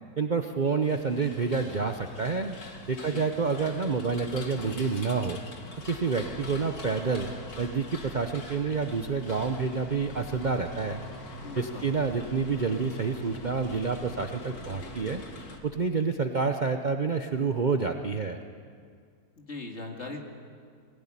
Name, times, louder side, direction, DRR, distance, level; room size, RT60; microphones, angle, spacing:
voice 1, 0.2-2.5 2.9-5.4 5.8-7.3 7.6-11.0 11.6-15.2 15.6-18.4, right 5 dB, 40° right, 6 dB, 0.8 m, -28 dB
sound 1, 0.8-15.6, left 2 dB, 70° left, 2.5 m, -43 dB
voice 2, 11.4-11.8 19.4-20.2, left 3 dB, 45° left, 2 dB, 2.6 m, -39 dB
22.0 x 17.0 x 10.0 m, 2.1 s
omnidirectional pair, 1.7 m